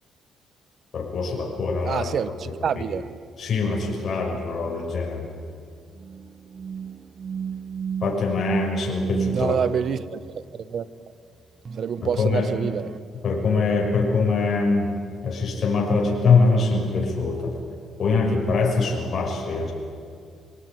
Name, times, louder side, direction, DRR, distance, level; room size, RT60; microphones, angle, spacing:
voice 1, 0.9-2.1 2.4-2.8 3.4-5.3 8.0-9.5 12.0-12.5 13.2-14.9 15.2-17.6 18.0-19.7, left 4 dB, 55° left, 0 dB, 6.1 m, -23 dB
voice 2, 1.8-3.1 9.3-10.9 11.8-12.9, right 7 dB, 60° right, 16 dB, 1.0 m, -27 dB
sound 1, 6.0-9.4 11.6-13.0, right 7 dB, 40° right, 0.5 m, -32 dB
24.5 x 17.5 x 9.9 m, 2.2 s
cardioid pair, 90°, 0 cm